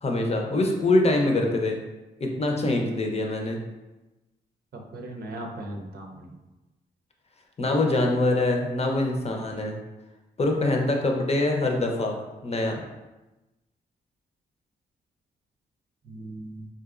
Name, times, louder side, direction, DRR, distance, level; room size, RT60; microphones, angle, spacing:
voice 1, 0.0-1.8 2.2-3.6 7.6-9.7 10.4-12.2 12.4-12.8, left 2 dB, 35° left, 2 dB, 0.7 m, -24 dB
voice 2, 4.7-6.3 16.0-16.7, right 1 dB, 55° right, 2 dB, 0.6 m, -38 dB
3.8 x 2.5 x 2.4 m, 1.1 s
supercardioid pair, 50°, 19 cm